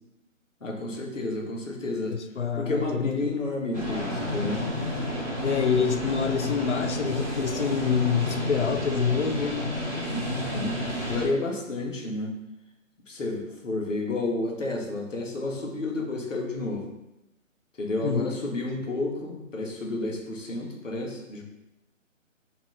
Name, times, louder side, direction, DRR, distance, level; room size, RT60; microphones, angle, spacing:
voice 1, 0.6-2.2 2.5-4.6 10.1-12.3 13.1-16.9 17.8-21.4, left 2 dB, ahead, -18 dB, 0.6 m, -31 dB
voice 2, 2.1-3.3 5.4-9.6 18.0-18.3, left 6 dB, 60° left, 9 dB, 0.6 m, -26 dB
sound 1, 3.7-11.3, left 1 dB, 20° right, 2.1 m, -31 dB
7.4 x 2.9 x 5.6 m, 0.94 s
figure-of-eight pair, 150°, 39 cm